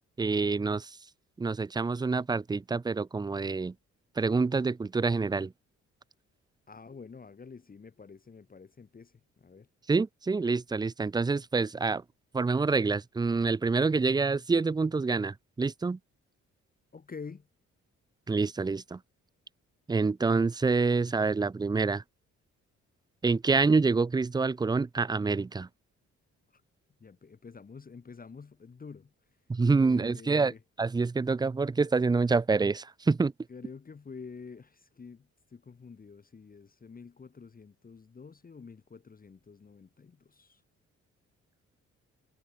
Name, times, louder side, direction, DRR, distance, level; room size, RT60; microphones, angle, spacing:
voice 1, 0.2-0.9 1.4-3.7 4.2-5.5 9.9-12.0 12.3-16.0 18.3-19.0 19.9-22.0 23.2-25.7 29.5-33.3, right 4 dB, 15° right, 0.4 m, -27 dB
voice 2, 6.7-9.7 16.9-17.5 26.5-26.6 27.0-29.1 29.7-30.6 33.5-40.6, left 5 dB, 30° left, 1.0 m, -48 dB
cardioid pair, 70°, 29 cm